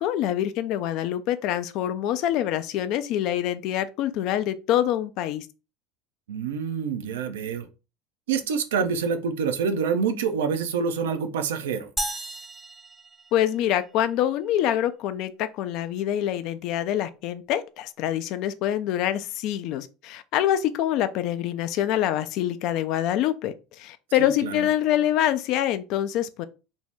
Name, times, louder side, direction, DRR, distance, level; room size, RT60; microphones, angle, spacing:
voice 1, 0.0-5.5 13.3-26.4, left 11 dB, 60° left, 0.3 m, -25 dB
voice 2, 6.3-7.7 8.3-11.9 24.2-24.6, right 6 dB, 80° right, 0.4 m, -27 dB
sound 1, 12.0-13.9, right 1 dB, 10° right, 0.5 m, -34 dB
2.6 x 2.1 x 3.4 m
hypercardioid pair, 75°, 0 cm